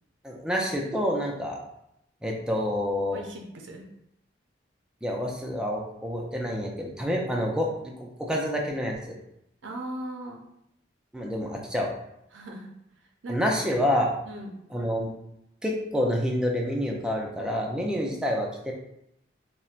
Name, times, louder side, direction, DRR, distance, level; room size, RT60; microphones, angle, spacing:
voice 1, 0.2-1.6 2.2-3.2 5.0-9.2 11.1-11.9 13.3-14.1 14.7-15.1 15.6-18.7, equal, 5° right, -1 dB, 0.4 m, -28 dB
voice 2, 3.1-3.9 9.6-10.4 12.3-12.7 13.2-13.5 14.3-14.5, right 1 dB, 90° right, 1 dB, 0.5 m, -38 dB
4.1 x 2.1 x 2.4 m, 0.78 s
head